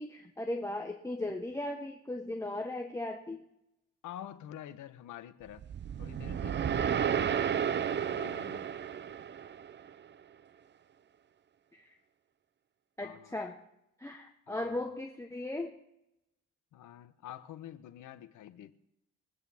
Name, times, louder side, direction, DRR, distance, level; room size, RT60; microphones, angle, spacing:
voice 1, 0.0-3.4 11.7-12.0 13.0-13.6 14.0-15.8, left 1 dB, 10° left, 3 dB, 1.1 m, -37 dB
voice 2, 4.0-5.6 6.0-8.7 13.0-13.4 14.5-14.8 16.7-18.7, left 11 dB, 80° left, 12 dB, 1.0 m, -48 dB
sound 1, 5.6-9.9, right 8 dB, 35° right, 0.5 m, -32 dB
23.0 x 9.1 x 3.5 m, 0.85 s
cardioid pair, 90°, 30 cm